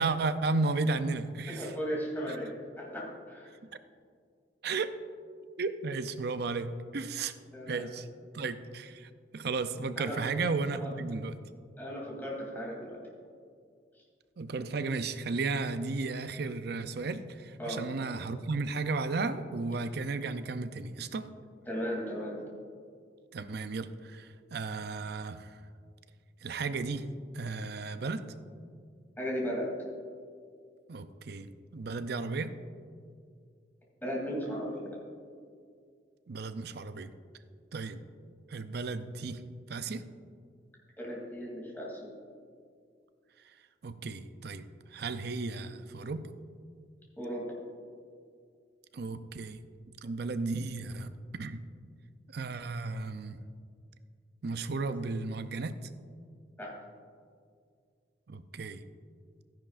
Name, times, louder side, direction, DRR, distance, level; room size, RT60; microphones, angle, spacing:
voice 1, 0.0-1.7 3.6-3.7 4.6-4.9 5.6-7.3 7.7-8.1 8.3-11.3 14.4-21.3 23.3-25.6 26.4-27.1 27.3-28.3 30.9-32.5 36.3-37.1 37.7-38.0 38.5-39.4 39.7-40.0 43.8-46.2 48.9-49.6 50.0-51.6 52.3-53.4 54.4-55.9 58.3-58.8, right 3 dB, 65° right, 11 dB, 0.5 m, -34 dB
voice 2, 1.5-3.5 7.5-7.9 10.0-10.2 10.8-10.9 11.8-13.0 17.6-17.8 21.6-22.4 29.2-29.7 34.0-34.9 41.0-42.0 47.2-47.5 56.6-56.7, equal, 10° left, -4 dB, 2.9 m, -36 dB
13.5 x 10.5 x 2.5 m, 2.2 s
head